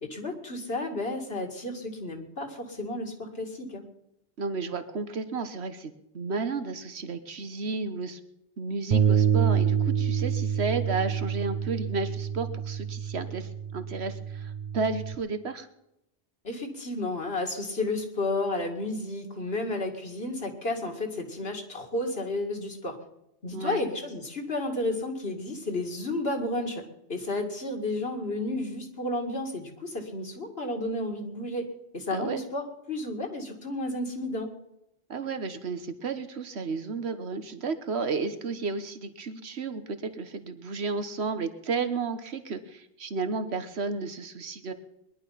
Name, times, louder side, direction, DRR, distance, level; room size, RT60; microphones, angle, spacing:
voice 1, 0.0-3.8 16.4-23.0 23.4-26.8 27.1-31.7 31.9-34.5, left 2 dB, 60° left, 3 dB, 2.5 m, -32 dB
voice 2, 4.4-8.2 8.6-15.7 23.5-23.8 32.1-32.4 35.1-44.7, right 4 dB, 70° right, 10 dB, 1.5 m, -32 dB
Bass guitar, 8.9-15.2, right 7 dB, 45° right, 0.8 m, -27 dB
21.5 x 11.0 x 5.7 m, 0.83 s
omnidirectional pair, 1.1 m